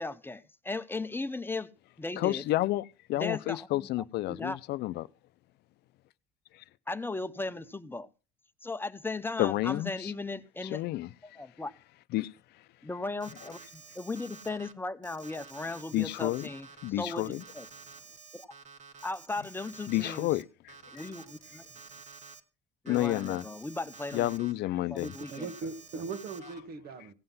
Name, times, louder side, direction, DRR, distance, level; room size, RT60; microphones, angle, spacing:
voice 1, 0.0-1.7 2.0-2.4 3.1-3.9 4.3-4.6 6.9-8.1 8.6-10.8 11.2-11.7 12.8-16.7 17.0-17.7 18.3-18.5 19.0-20.3 20.9-21.6 22.8-24.3 24.9-25.5, left 3 dB, 10° left, 0.7 m, -37 dB
voice 2, 2.2-5.1 9.4-10.1 10.6-11.1 12.1-12.3 15.9-16.5 16.8-17.4 19.9-20.7 22.9-23.4 24.1-25.1, left 16 dB, 75° left, 0.6 m, -30 dB
Alarm, 13.2-14.7 15.0-20.4 20.7-22.4 22.9-24.5 25.0-26.6, right 5 dB, 45° right, 1.5 m, -50 dB
voice 3, 25.3-27.1, right 4 dB, 65° right, 1.7 m, -39 dB
16.5 x 7.9 x 5.5 m
cardioid pair, 110°, 17 cm